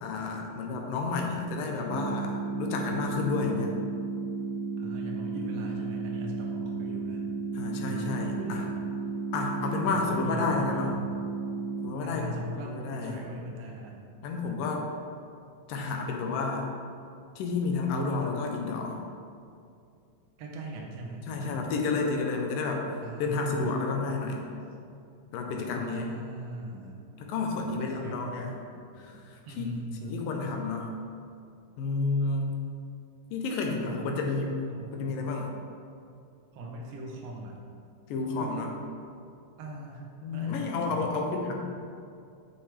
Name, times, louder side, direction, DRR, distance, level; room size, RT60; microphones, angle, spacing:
voice 1, 0.0-3.7 7.5-8.6 9.3-10.9 11.8-12.3 12.7-13.2 14.2-14.9 15.7-16.7 17.4-19.0 21.3-22.9 23.2-24.4 25.3-26.1 27.2-28.5 28.9-29.8 30.0-30.9 31.8-32.6 33.3-34.5 34.9-35.5 38.1-38.7 40.2-41.5, left 4 dB, 90° left, 1 dB, 2.6 m, -30 dB
sound 1, 1.9-11.9, right 4 dB, 45° right, 1.7 m, -33 dB
voice 2, 4.8-7.2 7.8-8.8 9.6-11.2 12.0-14.1 20.4-21.7 23.0-23.8 25.5-27.0 27.8-28.4 29.5-30.2 33.8-34.1 34.7-35.3 36.5-37.6 38.4-38.8 39.6-41.1, right 1 dB, 65° right, -1 dB, 1.8 m, -40 dB
8.1 x 7.5 x 3.4 m, 2.4 s
omnidirectional pair, 3.8 m